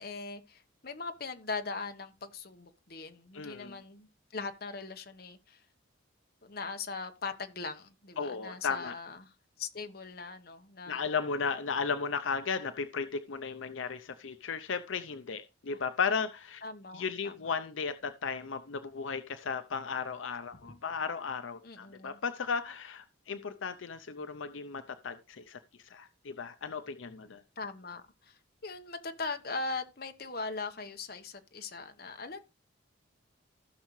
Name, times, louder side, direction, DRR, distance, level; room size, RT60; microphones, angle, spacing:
voice 1, 0.0-4.1 4.3-5.6 6.4-11.1 16.6-17.4 20.6-20.7 21.6-22.2 27.6-32.4, left 4 dB, 50° left, 1.1 m, -40 dB
voice 2, 3.3-3.8 8.2-8.9 10.9-16.6 16.9-27.4, left 5 dB, 75° left, 0.6 m, -35 dB
15.5 x 6.5 x 3.1 m
head